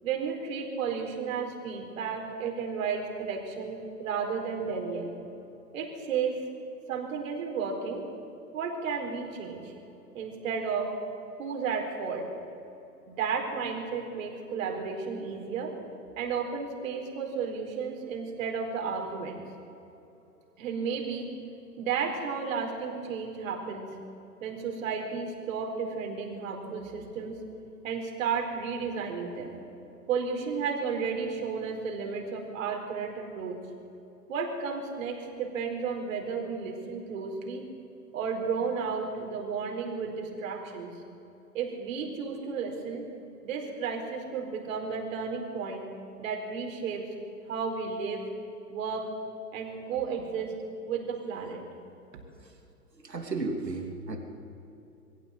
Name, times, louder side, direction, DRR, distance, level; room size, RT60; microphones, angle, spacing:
voice 1, 0.0-5.1 5.7-6.4 6.9-8.0 8.5-9.7 10.1-10.9 11.4-12.3 13.1-15.7 16.2-19.4 20.6-21.3 21.8-23.9 24.4-27.4 27.8-29.6 30.1-33.6 34.3-37.6 38.1-40.9 41.5-43.0 43.4-45.9 46.2-47.1 47.5-48.2 48.7-49.1 49.5-50.5 50.9-51.6, right 5 dB, 55° right, 2 dB, 4.6 m, -33 dB
voice 2, 52.9-54.2, right 3 dB, 80° right, 3 dB, 3.0 m, -33 dB
23.0 x 16.0 x 8.0 m, 2.9 s
figure-of-eight pair, 110°, 49 cm